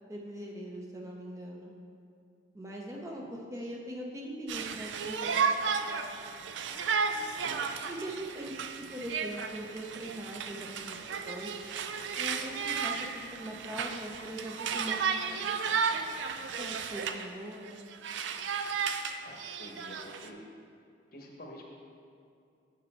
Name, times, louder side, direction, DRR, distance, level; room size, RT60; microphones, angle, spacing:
voice 1, 0.0-1.7 2.5-7.0 7.9-8.5 8.9-11.5 12.2-15.8 16.6-17.8, right 1 dB, 15° right, -1 dB, 0.6 m, -42 dB
voice 2, 3.1-3.4 19.2-20.4 21.1-21.6, left 1 dB, 50° left, 0 dB, 1.0 m, -48 dB
Conversation, 4.5-17.3 17.6-20.3, right 6 dB, 80° right, 0.4 m, -34 dB
6.6 x 6.6 x 4.4 m, 2.5 s
head